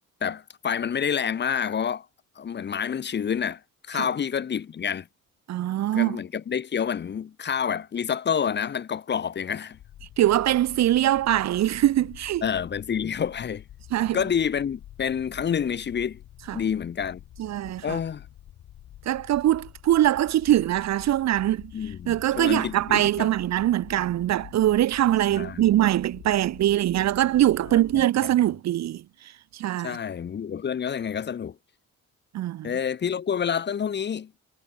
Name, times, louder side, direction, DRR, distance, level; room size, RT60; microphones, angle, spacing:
voice 1, 0.2-2.1 2.4-3.6 3.9-5.1 5.9-9.8 12.4-13.6 14.1-16.2 16.5-17.2 17.8-18.3 21.7-23.3 25.3-25.6 27.7-28.0 29.8-31.5 32.6-34.3, left 7 dB, 35° left, 0.7 m, -28 dB
voice 2, 5.5-6.2 10.2-12.4 13.9-14.2 16.5-16.6 17.4-18.0 19.1-21.7 22.1-29.0 29.5-30.0 32.3-32.7, right 13 dB, 65° right, 0.7 m, -22 dB
sound 1, 9.7-28.0, left 12 dB, 75° left, 7.3 m, -47 dB
cardioid pair, 90°, 30 cm